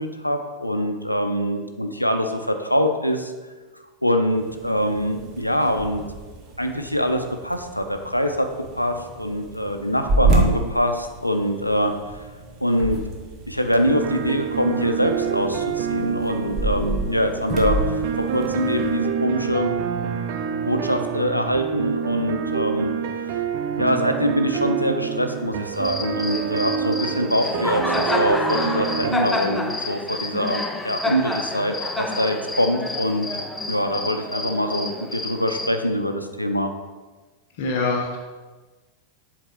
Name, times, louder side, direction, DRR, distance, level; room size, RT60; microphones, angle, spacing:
voice 1, 0.0-3.3 4.0-6.0 6.6-8.5 8.7-11.9 12.6-13.0 13.5-18.0 18.3-19.7 20.7-22.9 23.8-33.3 33.7-36.7, equal, 90° left, 6 dB, 0.5 m, -24 dB
sound 1, 4.3-19.1, right 2 dB, 30° right, 1.1 m, -29 dB
sound 2, 13.9-29.1, right 7 dB, 50° right, 0.5 m, -27 dB
Cricket, 25.7-35.8, left 2 dB, 5° left, 0.5 m, -29 dB
voice 2, 37.5-38.2, left 3 dB, 50° left, 1 dB, 0.8 m, -24 dB
7.5 x 3.6 x 4.6 m, 1.3 s
figure-of-eight pair, 90°, 0 cm